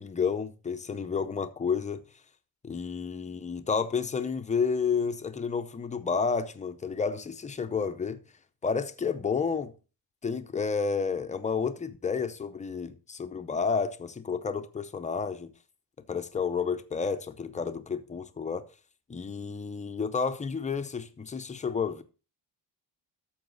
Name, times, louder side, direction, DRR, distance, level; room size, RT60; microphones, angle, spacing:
voice 1, 0.0-2.0 2.6-8.2 8.6-9.7 10.2-15.5 16.1-18.6 19.1-22.0, left 5 dB, 15° left, 0.6 m, -30 dB
12.0 x 7.1 x 3.9 m
cardioid pair, 180°, 43 cm